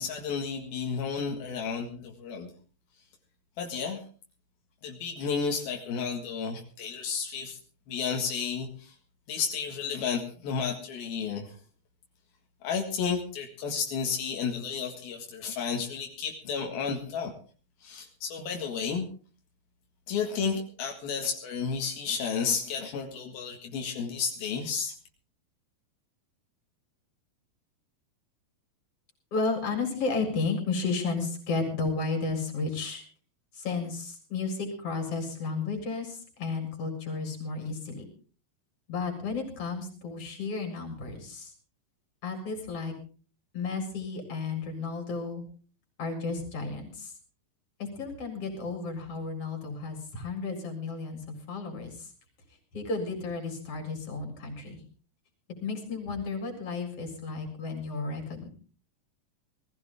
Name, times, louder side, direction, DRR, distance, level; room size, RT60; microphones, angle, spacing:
voice 1, 0.0-2.5 3.6-4.0 4.8-7.6 7.9-9.0 9.3-11.6 12.6-17.3 17.8-19.1 20.1-24.9, left 6 dB, 85° left, 2 dB, 3.7 m, -32 dB
voice 2, 29.3-33.0 33.5-38.1 38.9-41.5 42.2-42.9 43.5-45.4 46.0-47.1 47.8-51.2 51.5-52.1 52.7-54.8 55.6-58.5, left 4 dB, 40° left, 4 dB, 5.2 m, -33 dB
20.0 x 15.5 x 3.7 m, 0.39 s
omnidirectional pair, 4.2 m